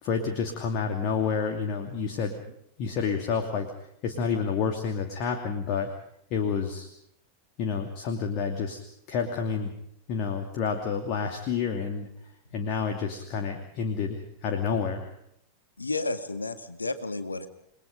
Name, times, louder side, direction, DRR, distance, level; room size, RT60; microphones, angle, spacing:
voice 1, 0.0-3.7 4.0-5.9 6.3-6.9 7.6-8.8 9.1-9.7 10.1-12.1 12.5-15.1, left 6 dB, 40° left, 4 dB, 2.7 m, -29 dB
voice 2, 15.8-17.5, left 2 dB, 80° left, 9 dB, 2.1 m, -32 dB
29.5 x 21.0 x 5.2 m, 0.73 s
figure-of-eight pair, 90°, 0 cm